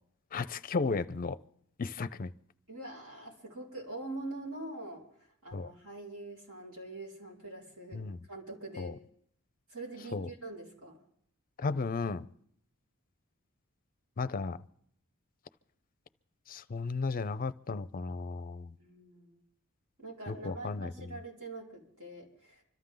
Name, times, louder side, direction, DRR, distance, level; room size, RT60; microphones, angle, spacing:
voice 1, 0.3-1.4 1.8-2.3 5.5-5.7 7.9-8.2 8.8-9.0 10.1-10.3 11.6-12.3 14.2-14.6 16.5-18.7 20.3-21.1, left 4 dB, 40° left, 0.5 m, -34 dB
voice 2, 2.7-9.0 9.7-11.0 18.8-19.4 20.0-22.6, right 2 dB, 70° right, 4.8 m, -44 dB
25.5 x 13.5 x 3.8 m
head